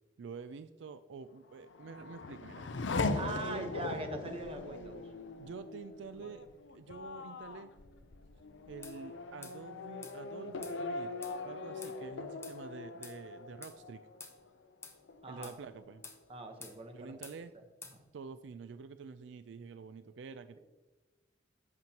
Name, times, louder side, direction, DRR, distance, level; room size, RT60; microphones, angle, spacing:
voice 1, 0.2-2.7 3.0-3.7 5.4-6.5 6.7-7.7 8.7-11.1 11.4-14.1 15.3-16.0 16.9-17.5 18.1-20.6, right 5 dB, 80° right, 11 dB, 0.4 m, -48 dB
Race car auto racing / Accelerating revving vroom, 1.5-14.7 15.1-15.8, left 3 dB, 80° left, 0.6 m, -40 dB
voice 2, 3.2-5.0 15.2-15.5 16.3-17.1 17.9-18.0, right 2 dB, 30° right, 4 dB, 1.0 m, -41 dB
sound 1, 8.8-9.0 9.4-9.6 10.0-10.2 10.6-10.8 11.2-11.4 11.8-12.0 12.4-12.6 13.0-13.2 13.6-13.8 14.2-14.4 14.8-15.0 15.4-15.6 16.0-16.2 16.6-16.8 17.2-17.4 17.8-18.0, left 4 dB, 15° left, 0.9 m, -49 dB
11.0 x 7.7 x 2.9 m, 1.2 s
head